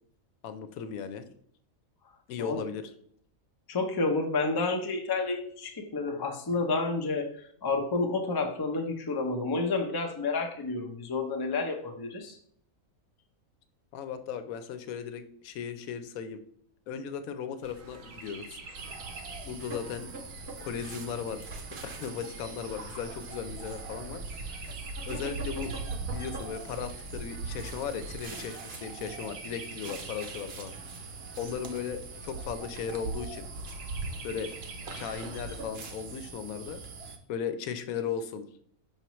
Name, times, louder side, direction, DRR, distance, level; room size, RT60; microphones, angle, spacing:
voice 1, 0.4-1.3 2.3-2.8 13.9-16.4 16.9-18.6 19.4-20.1 20.6-21.5 21.8-24.2 25.1-25.7 26.1-30.8 31.4-33.5 34.2-34.5 34.9-36.8 37.3-38.6, left 7 dB, 85° left, 10 dB, 1.1 m, -36 dB
voice 2, 3.7-12.4, left 3 dB, 35° left, 3 dB, 0.4 m, -30 dB
Chirp tweet, 17.6-35.6, right 3 dB, 75° right, 1.2 m, -42 dB
sound 1, 18.7-37.2, right 4 dB, 55° right, 0.9 m, -44 dB
5.7 x 5.4 x 3.1 m, 0.63 s
omnidirectional pair, 1.4 m